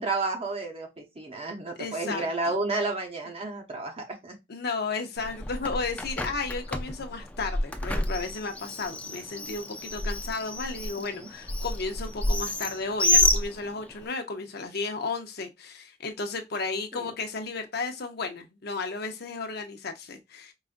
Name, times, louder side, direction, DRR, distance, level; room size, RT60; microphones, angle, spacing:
voice 1, 0.0-4.4 11.1-11.3 17.0-17.1, right 3 dB, 30° right, 0.8 m, -31 dB
voice 2, 1.8-2.5 4.5-20.5, left 4 dB, 60° left, 0.7 m, -34 dB
Bird, 5.2-14.1, left 1 dB, 10° left, 0.4 m, -29 dB
4.8 x 2.5 x 2.5 m
head